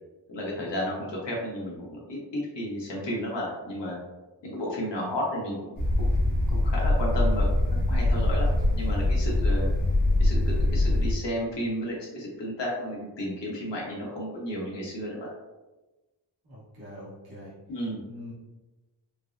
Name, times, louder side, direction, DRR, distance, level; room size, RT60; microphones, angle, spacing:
voice 1, 0.3-4.0 4.4-6.1 6.5-7.5 7.7-8.5 8.8-9.7 10.2-15.3 17.7-18.0, equal, 70° left, -4 dB, 1.2 m, -33 dB
sound 1, 5.8-11.1, left 1 dB, 50° left, 0.9 m, -23 dB
voice 2, 16.4-17.5 18.1-18.3, left 1 dB, 55° right, -8 dB, 1.2 m, -43 dB
4.5 x 2.0 x 2.4 m, 1.1 s
wide cardioid pair, 150°, 43 cm